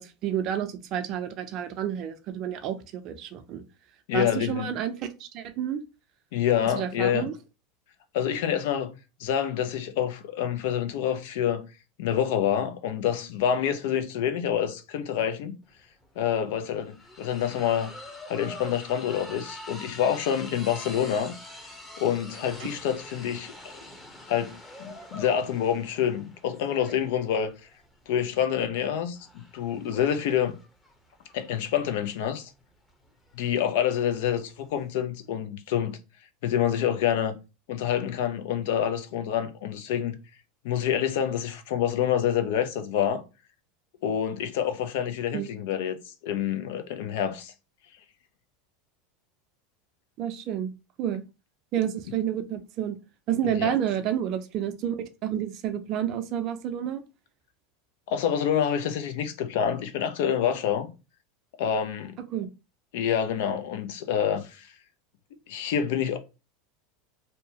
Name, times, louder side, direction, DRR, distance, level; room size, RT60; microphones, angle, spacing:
voice 1, 0.0-3.6 4.1-5.8 6.7-7.3 45.3-45.5 50.2-50.7 51.0-51.2 51.7-53.0 53.3-57.0 62.3-62.5, right 9 dB, 50° right, 0.5 m, -30 dB
voice 2, 4.1-4.7 6.3-7.3 8.1-8.9 9.2-11.7 12.0-15.6 16.2-17.9 18.3-21.3 22.0-23.5 24.3-27.5 28.1-29.2 29.5-30.6 31.3-32.5 33.3-36.0 36.4-37.4 37.7-40.1 40.6-43.2 44.0-46.0 46.2-47.5 53.4-53.7 58.1-60.9 61.6-62.2 62.9-64.7 65.5-66.2, left 9 dB, 65° left, 0.5 m, -27 dB
sound 1, 15.7-34.9, left 1 dB, 15° left, 0.9 m, -46 dB
2.8 x 2.2 x 2.8 m
hypercardioid pair, 90°, 0 cm